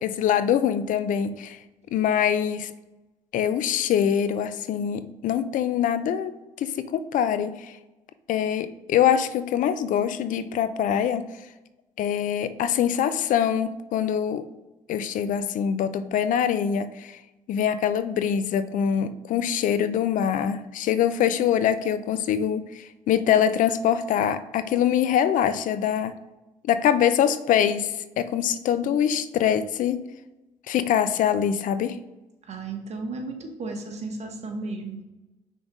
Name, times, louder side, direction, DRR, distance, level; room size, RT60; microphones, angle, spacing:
voice 1, 0.0-1.6 1.9-2.7 3.3-6.3 6.6-7.7 8.3-11.3 12.0-14.5 14.9-17.2 17.5-26.1 26.6-30.0 30.7-32.0, left 9 dB, 65° left, 12 dB, 0.5 m, -24 dB
voice 2, 32.5-35.0, right 3 dB, 50° right, 3 dB, 1.3 m, -34 dB
5.4 x 3.9 x 4.7 m, 1.0 s
cardioid pair, 80°, 14 cm